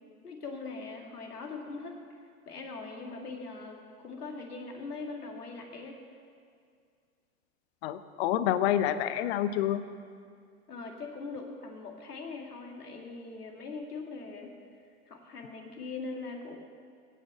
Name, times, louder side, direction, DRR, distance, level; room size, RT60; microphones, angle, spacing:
voice 1, 0.2-2.0 2.5-6.0 10.7-14.5 15.1-16.6, left 3 dB, 85° left, 2 dB, 2.2 m, -41 dB
voice 2, 7.8-9.8, left 11 dB, 45° left, 13 dB, 0.8 m, -28 dB
17.0 x 6.3 x 7.7 m, 2.2 s
hypercardioid pair, 110°, 45 cm